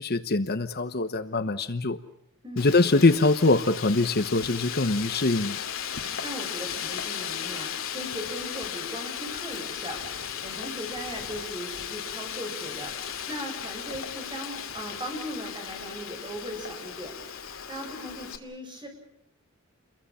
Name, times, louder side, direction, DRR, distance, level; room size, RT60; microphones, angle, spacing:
voice 1, 0.0-2.0 2.6-5.6, left 3 dB, 50° left, 11 dB, 1.1 m, -23 dB
Wind, 2.6-18.4, left 8 dB, 75° left, 2.5 m, -36 dB
voice 2, 6.2-18.9, equal, 25° right, 3 dB, 7.6 m, -39 dB
30.0 x 22.5 x 5.7 m, 0.76 s
head